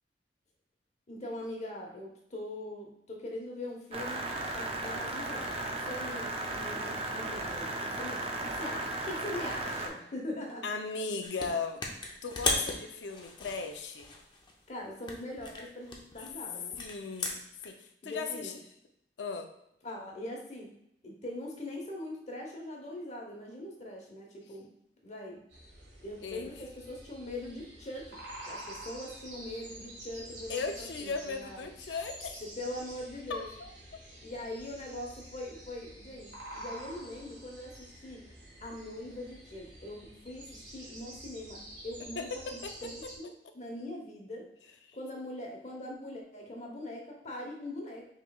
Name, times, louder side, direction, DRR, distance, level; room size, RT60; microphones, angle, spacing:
voice 1, 1.1-4.3 4.5-10.6 14.7-16.8 18.0-18.6 19.8-20.7 21.0-24.7 25.0-25.4 26.0-28.2 28.5-31.7 32.4-33.5 34.2-38.2 38.6-44.5 44.9-48.1, left 1 dB, 40° left, 0 dB, 0.9 m, -42 dB
sound 1, 3.9-9.9, right 2 dB, 35° right, 0.5 m, -35 dB
voice 2, 10.6-11.8 12.2-14.1 16.8-18.5 19.2-19.5 26.2-26.5 30.5-32.4 33.3-33.7 42.2-42.7, left 4 dB, 90° left, 6 dB, 0.5 m, -37 dB
sound 2, 11.2-11.5 11.8-14.6 15.0-17.7, left 3 dB, 25° left, 0.6 m, -36 dB
sound 3, 25.5-43.2, right 1 dB, 80° right, 1.4 m, -48 dB
5.6 x 3.1 x 2.3 m, 0.75 s
head